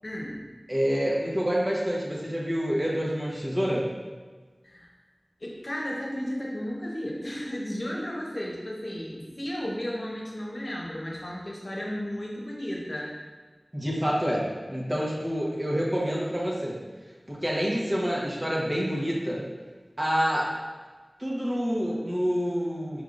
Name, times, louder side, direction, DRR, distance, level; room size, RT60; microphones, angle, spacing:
voice 1, 0.0-0.4 4.6-4.9 5.4-13.1, equal, 55° left, -4 dB, 0.9 m, -34 dB
voice 2, 0.7-3.9 13.7-16.8 17.3-19.4 20.0-20.5 21.2-23.0, equal, 25° right, -4 dB, 1.0 m, -27 dB
4.8 x 3.6 x 2.5 m, 1.4 s
wide cardioid pair, 45°, 0 cm